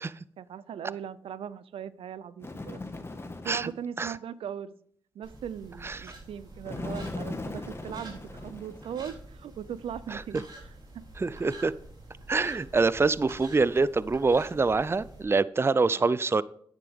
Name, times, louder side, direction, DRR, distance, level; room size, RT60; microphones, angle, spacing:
voice 1, 0.4-2.8 3.4-4.7 5.1-11.0 15.9-16.1, right 9 dB, 80° right, 0.5 m, -39 dB
Bird, 2.4-3.8 6.6-9.2, left 2 dB, 25° left, 1.6 m, -38 dB
sound 1, 5.2-15.2, right 2 dB, 50° right, 4.4 m, -47 dB
voice 2, 11.2-11.7 12.3-16.4, right 4 dB, 25° right, 0.5 m, -25 dB
10.0 x 9.8 x 3.6 m
cardioid pair, 55°, 9 cm